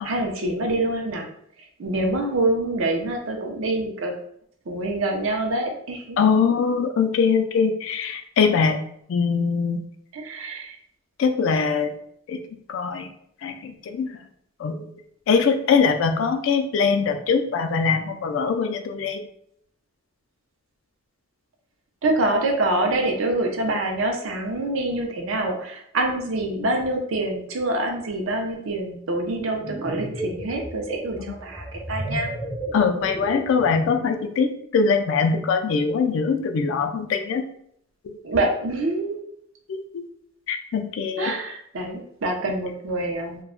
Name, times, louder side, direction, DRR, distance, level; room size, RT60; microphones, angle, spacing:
voice 1, 0.0-1.3 1.8-4.1 4.7-6.2 10.1-10.8 22.0-32.3 38.2-39.2 41.2-43.4, right 2 dB, 75° right, 2 dB, 0.5 m, -26 dB
voice 2, 6.2-8.8 9.1-9.8 11.2-11.9 12.3-12.4 12.7-13.1 13.4-14.1 14.6-14.8 15.3-19.3 32.7-37.5 38.0-38.2 39.7-40.1 40.5-41.3, left 5 dB, 65° left, 6 dB, 0.3 m, -22 dB
sound 1, 29.5-34.2, right 1 dB, 5° right, 0.4 m, -33 dB
2.2 x 2.0 x 3.6 m, 0.69 s
head